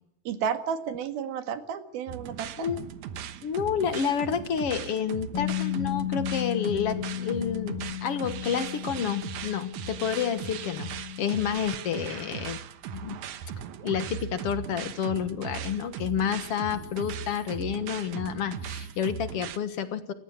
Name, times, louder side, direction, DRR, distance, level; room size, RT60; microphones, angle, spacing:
voice 1, 0.3-2.7, right 7 dB, 85° right, 9 dB, 3.7 m, -32 dB
sound 1, 2.1-19.6, right 8 dB, 65° right, 2.2 m, -38 dB
voice 2, 3.4-10.9 11.2-12.6 12.9-13.2 13.8-20.1, left 8 dB, 55° left, 11 dB, 1.9 m, -29 dB
Bass guitar, 5.3-11.6, left 14 dB, 85° left, 4.8 m, -34 dB
30.0 x 15.0 x 8.9 m, 0.76 s
omnidirectional pair, 4.2 m